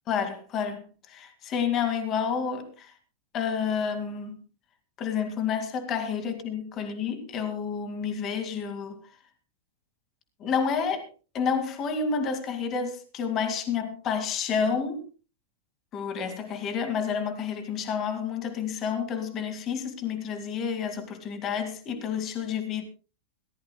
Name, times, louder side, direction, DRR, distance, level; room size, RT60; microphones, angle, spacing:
voice 1, 0.1-2.9 3.3-4.4 5.0-9.0 10.4-11.1 11.3-15.1 15.9-22.8, left 6 dB, 30° left, 2.2 m, -30 dB
21.0 x 15.0 x 2.3 m
supercardioid pair, 155°, 0 cm